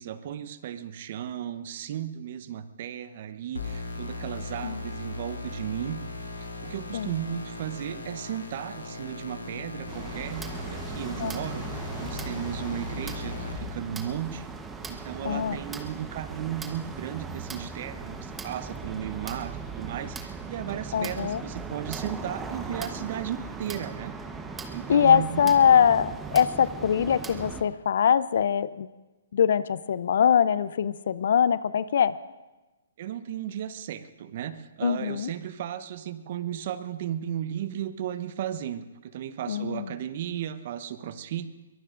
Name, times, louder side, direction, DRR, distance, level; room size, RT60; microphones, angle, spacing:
voice 1, 0.0-6.0 6.6-11.7 12.0-14.5 14.9-24.1 24.7-25.5 33.0-41.5, right 10 dB, 50° right, 13 dB, 0.9 m, -35 dB
sound 1, 3.5-13.5, left 2 dB, 90° left, 3.2 m, -38 dB
sound 2, 9.9-27.6, right 4 dB, 10° right, 1.1 m, -38 dB
voice 2, 15.2-15.6 20.9-21.4 24.9-28.9 29.3-32.2 34.8-35.3 39.5-39.9, left 8 dB, 60° left, 17 dB, 0.5 m, -23 dB
23.0 x 21.5 x 2.6 m, 1.1 s
figure-of-eight pair, 130°, 0 cm